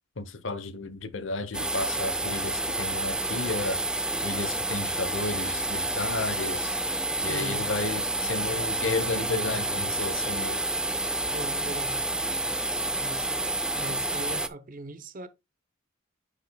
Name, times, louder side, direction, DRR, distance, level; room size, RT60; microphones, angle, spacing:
voice 1, 0.2-3.8 4.2-6.8 7.2-10.6, left 3 dB, 65° left, 0.9 m, -33 dB
sound 1, 1.5-14.5, right 2 dB, 5° right, 0.5 m, -29 dB
voice 2, 7.3-7.7 11.3-12.0 13.0-13.4 13.8-15.3, right 1 dB, 45° right, 0.8 m, -39 dB
9.9 x 5.0 x 2.3 m
head